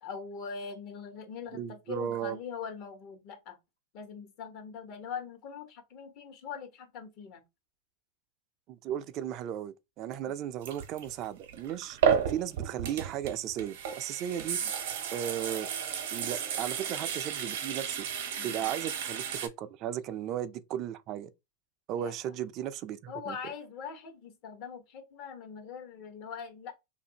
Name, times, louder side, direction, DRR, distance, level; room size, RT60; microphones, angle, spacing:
voice 1, 0.0-3.6 3.9-7.4 14.6-14.7 18.4-18.6 21.9-22.1 23.1-26.8, left 6 dB, 55° left, 0.9 m, -42 dB
voice 2, 1.5-2.4 8.7-12.0 12.3-14.6 15.1-15.7 16.1-18.1 18.4-21.3 21.9-23.4, right 10 dB, 45° right, 0.3 m, -35 dB
sound 1, 10.6-19.5, right 7 dB, 70° right, 0.7 m, -33 dB
2.6 x 2.5 x 2.7 m
hypercardioid pair, 105°, 0 cm